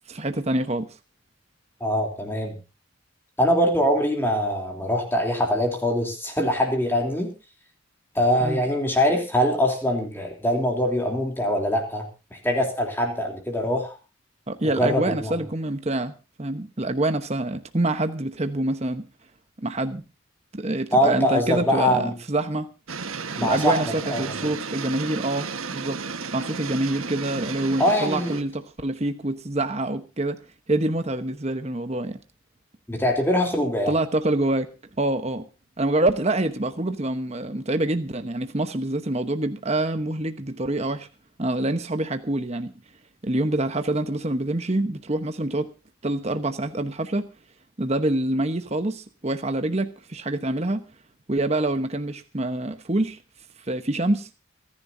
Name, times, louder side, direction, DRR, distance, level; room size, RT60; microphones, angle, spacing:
voice 1, 0.1-1.0 8.4-8.6 14.5-16.1 16.4-19.1 19.6-20.0 20.5-22.7 23.4-26.0 26.3-30.4 30.7-32.2 33.9-34.7 35.0-35.5 35.8-41.1 41.4-42.7 43.2-45.7 46.0-47.3 47.8-50.9 51.3-53.2 53.7-54.3, right 2 dB, 30° right, 9 dB, 1.0 m, -26 dB
voice 2, 1.8-2.5 3.4-7.3 8.1-12.0 12.3-14.0 14.6-15.3 20.9-22.1 23.4-23.8 24.1-24.2 27.8-28.4 32.9-33.9, equal, 10° left, 2 dB, 3.2 m, -23 dB
sound 1, 22.9-28.4, right 5 dB, 75° right, 1.4 m, -33 dB
28.0 x 11.0 x 2.7 m, 0.31 s
head